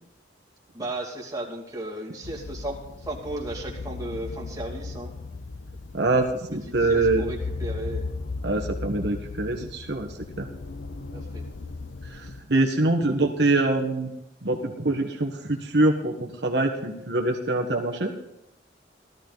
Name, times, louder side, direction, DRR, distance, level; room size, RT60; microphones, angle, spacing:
voice 1, 0.7-5.1 6.7-8.1 11.1-11.4, right 1 dB, 20° right, -2 dB, 2.4 m, -35 dB
sound 1, 2.2-12.4, left 3 dB, 80° left, 0.7 m, -36 dB
voice 2, 5.9-7.2 8.4-10.5 12.0-14.1 14.4-18.1, right 2 dB, 65° right, 2 dB, 1.4 m, -24 dB
16.5 x 13.5 x 4.0 m, 0.87 s
head